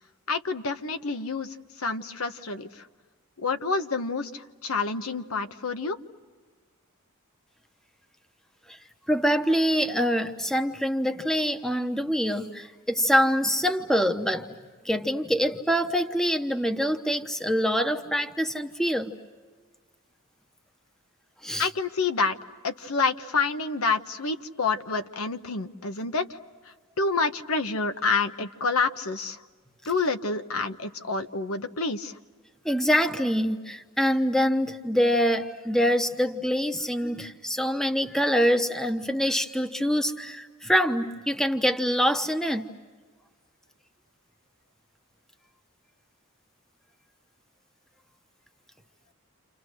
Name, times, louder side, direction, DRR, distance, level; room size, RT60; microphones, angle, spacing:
voice 1, 0.3-1.5 1.8-2.7 3.4-4.3 4.6-6.0 21.6-22.3 22.6-26.3 27.0-29.4 29.9-32.1, left 4 dB, 75° left, 1.2 m, -28 dB
voice 2, 9.1-14.5 14.8-19.1 21.4-21.7 32.6-42.6, equal, ahead, 1.1 m, -25 dB
29.5 x 28.5 x 6.5 m
head